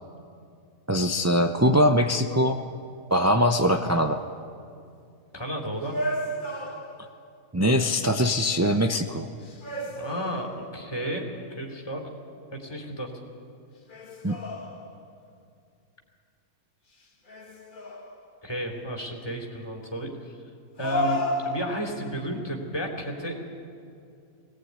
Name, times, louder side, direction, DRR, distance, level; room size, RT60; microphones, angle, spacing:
voice 1, 0.9-2.6 3.1-4.2 7.5-9.3 14.2-14.4, equal, 25° right, 5 dB, 0.4 m, -22 dB
voice 2, 5.3-6.0 9.8-12.1 12.5-13.1 18.4-20.3 20.8-23.4, right 1 dB, 15° left, 0 dB, 3.2 m, -33 dB
sound 1, 5.9-7.3 9.4-10.9 13.9-15.2 17.3-18.4 20.8-22.1, left 1 dB, 35° left, 1.6 m, -32 dB
22.0 x 17.5 x 9.6 m, 2.5 s
omnidirectional pair, 1.6 m